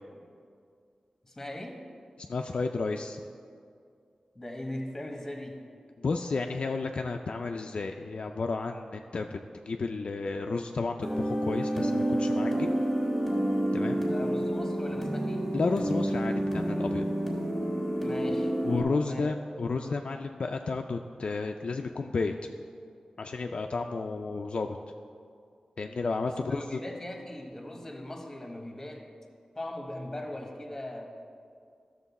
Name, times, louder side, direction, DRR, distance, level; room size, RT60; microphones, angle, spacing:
voice 1, 1.2-1.8 4.3-5.6 12.4-12.5 13.8-15.5 18.0-18.5 19.0-19.3 26.2-29.0 29.6-31.1, left 1 dB, 15° left, 2 dB, 1.2 m, -39 dB
voice 2, 2.2-3.2 6.0-9.4 9.7-12.7 13.7-14.0 15.5-17.0 18.6-22.3 23.2-24.8 25.8-26.8, left 3 dB, 55° left, 4 dB, 0.4 m, -32 dB
sound 1, 11.0-18.8, right 1 dB, 5° right, 1.9 m, -29 dB
13.0 x 6.6 x 4.1 m, 2.3 s
wide cardioid pair, 115°, 2 cm